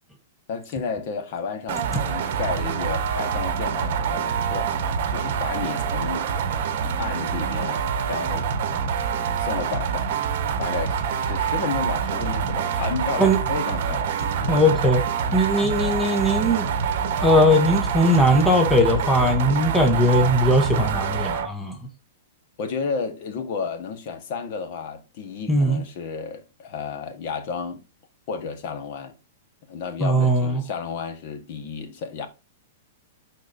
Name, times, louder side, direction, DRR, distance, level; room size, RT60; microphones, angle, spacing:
voice 1, 0.5-4.7 5.1-6.3 6.8-8.5 9.4-10.1 10.6-14.1 14.4-14.6 22.6-27.8 28.3-29.1 29.7-32.3, left 5 dB, 45° left, 1.4 m, -32 dB
sound 1, 1.7-21.5, right 7 dB, 50° right, 1.2 m, -26 dB
voice 2, 14.5-15.0 15.3-16.7 17.2-21.8 25.5-25.8 30.0-30.6, equal, 5° left, 0.9 m, -19 dB
12.0 x 4.2 x 2.7 m
hypercardioid pair, 160°, 0 cm